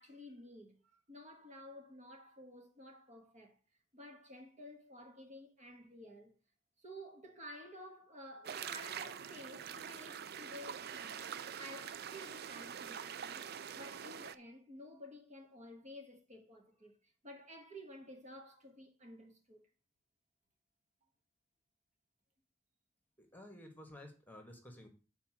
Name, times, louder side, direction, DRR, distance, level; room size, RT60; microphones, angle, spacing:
voice 1, 0.0-3.6 3.9-6.4 6.8-13.5 13.7-17.0 17.2-19.7, equal, 40° right, 1.5 m, -53 dB
sound 1, 8.4-14.3, right 8 dB, 55° right, 0.4 m, -45 dB
voice 2, 23.2-24.9, left 1 dB, 10° left, 1.5 m, -53 dB
8.4 x 4.2 x 6.1 m
head